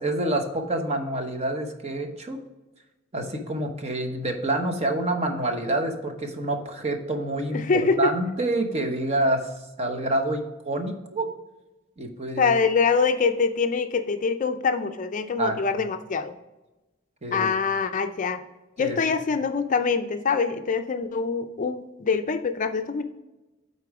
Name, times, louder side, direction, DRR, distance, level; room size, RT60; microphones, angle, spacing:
voice 1, 0.0-2.4 3.1-7.6 8.0-9.5 9.8-11.3 12.0-12.5 15.4-15.6 17.2-17.5 18.8-19.0, right 1 dB, 35° right, 5 dB, 0.9 m, -27 dB
voice 2, 7.5-8.1 12.4-16.3 17.3-18.4 18.8-23.0, left 5 dB, 40° left, 8 dB, 0.4 m, -24 dB
8.4 x 4.2 x 4.8 m, 1.1 s
head